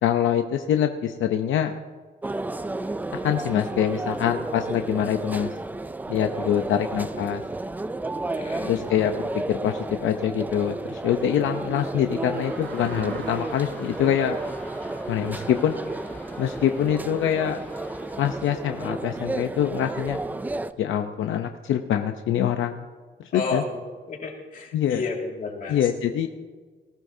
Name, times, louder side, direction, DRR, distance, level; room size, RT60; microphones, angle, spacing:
voice 1, 0.0-1.7 3.1-5.5 6.1-7.4 8.6-14.4 15.1-15.8 16.4-17.6 18.2-20.2 20.8-22.9 23.2-23.6 24.7-25.0 25.7-26.3, left 9 dB, 80° left, 6 dB, 0.7 m, -24 dB
sound 1, 2.2-20.7, right 2 dB, 10° right, 0.3 m, -32 dB
voice 2, 8.3-8.8 23.3-23.8 24.1-25.9, left 4 dB, 45° left, 0 dB, 2.3 m, -32 dB
sound 2, 10.6-18.9, left 2 dB, 10° left, 2.7 m, -46 dB
sound 3, 12.0-13.3, right 10 dB, 60° right, 0.5 m, -40 dB
19.5 x 15.0 x 2.7 m, 1.5 s
cardioid pair, 165°, 20 cm